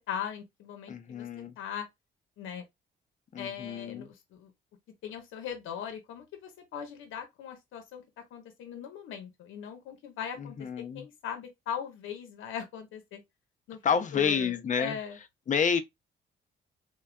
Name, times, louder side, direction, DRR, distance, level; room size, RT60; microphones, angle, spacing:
voice 1, 0.1-1.3 1.6-1.9 2.4-2.6 3.4-4.5 5.0-8.0 8.3-10.6 10.9-13.2 13.7-13.8 14.1-15.2, left 8 dB, 85° left, 0.8 m, -39 dB
voice 2, 0.9-1.6 3.3-4.1 10.4-11.0 13.8-15.0 15.5-15.8, left 6 dB, 40° left, 0.6 m, -29 dB
3.2 x 2.2 x 2.3 m
cardioid pair, 90°, 20 cm